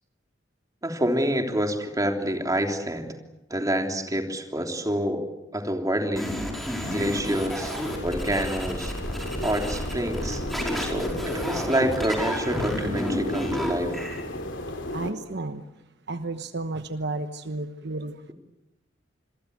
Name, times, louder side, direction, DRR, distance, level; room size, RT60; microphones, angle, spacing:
voice 1, 0.8-3.1 3.5-5.2 5.5-6.3 6.9-7.7 8.0-8.9 9.4-10.4 10.8-14.1, right 1 dB, 20° right, 3 dB, 3.4 m, -27 dB
sound 1, 6.2-14.2, equal, ahead, 5.3 m, -31 dB
sound 2, 6.8-15.1, left 1 dB, 70° left, 3.6 m, -35 dB
voice 2, 14.9-15.7 16.1-18.2, right 2 dB, 60° right, 9 dB, 1.1 m, -32 dB
27.5 x 22.5 x 8.4 m, 0.98 s
head